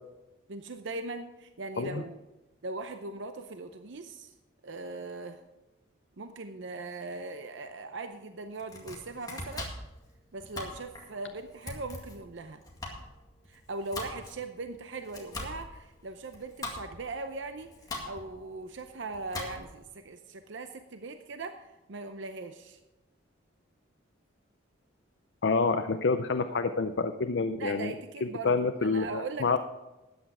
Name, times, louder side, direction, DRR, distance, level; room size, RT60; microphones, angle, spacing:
voice 1, 0.5-2.2 2.6-4.3 4.6-5.4 6.2-9.7 10.3-12.6 13.5-17.7 18.0-22.8 27.6-28.5 28.8-29.6, right 3 dB, 65° right, 8 dB, 0.7 m, -40 dB
Domestic sounds home sounds, 8.5-19.9, left 2 dB, 20° left, 2.0 m, -42 dB
voice 2, 25.4-27.9 28.2-29.6, left 4 dB, 60° left, 8 dB, 0.5 m, -28 dB
13.0 x 9.3 x 4.8 m, 1.0 s
head